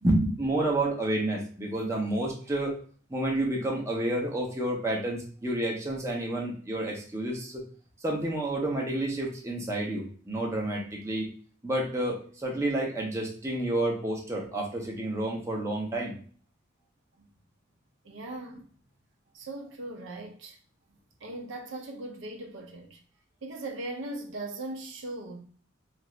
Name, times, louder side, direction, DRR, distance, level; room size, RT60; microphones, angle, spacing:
voice 1, 0.0-2.7 3.1-7.6 8.0-11.3 11.6-16.1, right 1 dB, 15° right, 0.6 m, -29 dB
voice 2, 18.0-18.6 19.3-20.6 21.2-23.0 23.4-25.4, right 2 dB, 65° right, 0.6 m, -39 dB
2.8 x 2.4 x 3.1 m
head